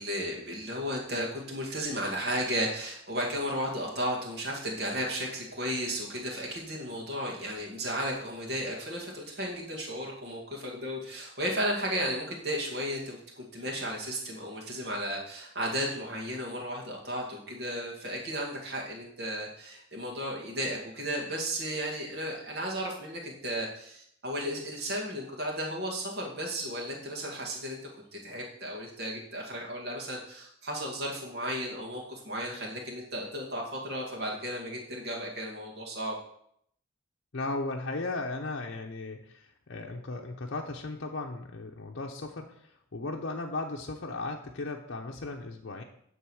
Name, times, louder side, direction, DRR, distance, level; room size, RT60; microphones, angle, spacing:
voice 1, 0.0-27.8 28.1-36.2, equal, 50° right, -2 dB, 2.0 m, -34 dB
voice 2, 37.3-45.8, left 2 dB, 55° left, 0 dB, 0.7 m, -36 dB
10.5 x 3.7 x 6.3 m, 0.70 s
head